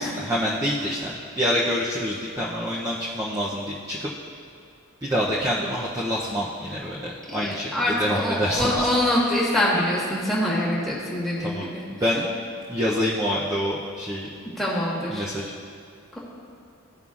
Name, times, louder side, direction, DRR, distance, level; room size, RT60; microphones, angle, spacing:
voice 1, 0.0-4.1 5.0-8.9 11.4-12.2 12.7-14.3 15.1-15.5, equal, 15° right, -6 dB, 0.5 m, -27 dB
voice 2, 7.3-11.8 14.6-15.3, left 1 dB, ahead, -7 dB, 1.4 m, -25 dB
14.5 x 5.4 x 2.4 m, 2.3 s
head